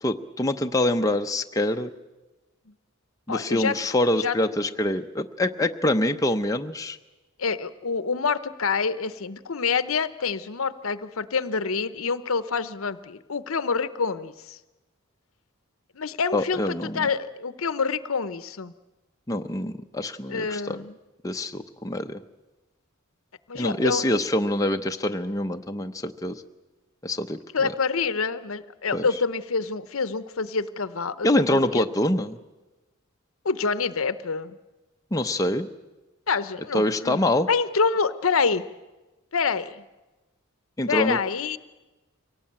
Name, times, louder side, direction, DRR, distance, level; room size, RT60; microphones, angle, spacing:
voice 1, 0.0-1.9 3.3-7.0 16.3-17.1 19.3-20.8 21.2-22.2 23.5-26.4 27.0-27.7 28.9-29.1 31.2-32.4 35.1-35.7 36.7-37.5 40.8-41.2, left 1 dB, 15° left, 5 dB, 0.7 m, -25 dB
voice 2, 3.3-3.8 4.2-4.4 7.4-14.6 15.9-18.7 20.3-21.0 23.5-24.2 27.5-31.8 33.4-34.6 36.3-37.2 37.5-38.6 39.3-39.8 40.9-41.6, left 5 dB, 70° left, 14 dB, 0.8 m, -27 dB
24.0 x 18.0 x 8.8 m, 1.1 s
head